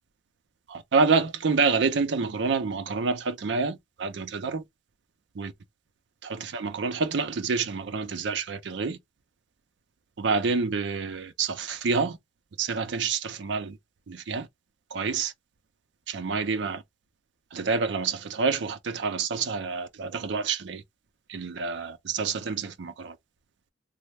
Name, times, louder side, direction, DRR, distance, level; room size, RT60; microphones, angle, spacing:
voice 1, 0.7-4.6 5.4-5.5 6.2-9.0 10.2-12.2 12.6-13.8 14.1-14.5 14.9-15.3 16.1-16.8 17.5-20.8 21.3-23.1, right 4 dB, 70° right, 0.5 m, -28 dB
3.1 x 2.0 x 3.2 m
head